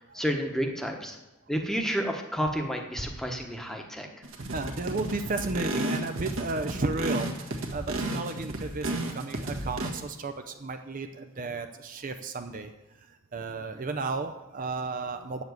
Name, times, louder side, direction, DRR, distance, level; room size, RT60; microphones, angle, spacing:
voice 1, 0.1-1.1 1.5-4.1, equal, ahead, 3 dB, 1.1 m, -30 dB
sound 1, 4.2-9.9, right 1 dB, 65° right, 1.6 m, -33 dB
voice 2, 4.5-12.7 13.3-15.4, right 3 dB, 40° right, 7 dB, 0.6 m, -33 dB
8.7 x 7.1 x 8.0 m, 1.0 s
head